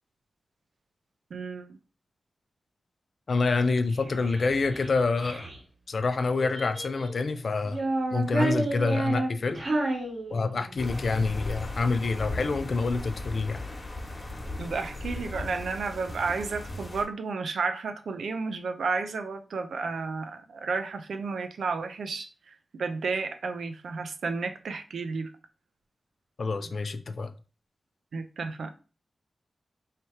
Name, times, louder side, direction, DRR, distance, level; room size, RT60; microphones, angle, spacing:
voice 1, 1.3-1.8 14.6-25.3 28.1-28.7, right 4 dB, 85° right, 0.5 m, -32 dB
voice 2, 3.3-5.5 5.9-7.8 8.1-9.6 10.3-13.6 26.4-27.3, left 4 dB, 65° left, 0.5 m, -27 dB
Child speech kid speaking, 3.9-5.6 6.3-7.2 7.6-10.8, right 2 dB, 60° right, 1.7 m, -30 dB
sound 1, 10.8-17.0, left 2 dB, 40° left, 1.3 m, -37 dB
3.3 x 2.8 x 4.5 m
cardioid pair, 70°, 0 cm